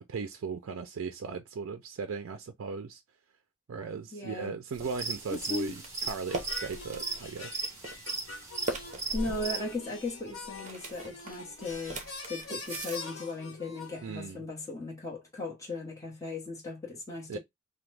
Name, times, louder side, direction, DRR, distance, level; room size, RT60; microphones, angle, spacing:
voice 1, 0.1-3.0 3.7-5.8 6.0-7.7 14.0-14.5 17.3-17.4, right 5 dB, 70° right, 0.4 m, -37 dB
voice 2, 4.1-4.6 5.3-5.8 9.1-17.4, left 3 dB, 15° left, 0.9 m, -37 dB
sound 1, 4.7-13.0, right 2 dB, 35° right, 0.7 m, -41 dB
sound 2, 4.8-9.8, right 4 dB, 15° right, 1.0 m, -38 dB
sound 3, 6.3-14.2, left 3 dB, 75° left, 1.0 m, -44 dB
2.9 x 2.1 x 3.2 m
head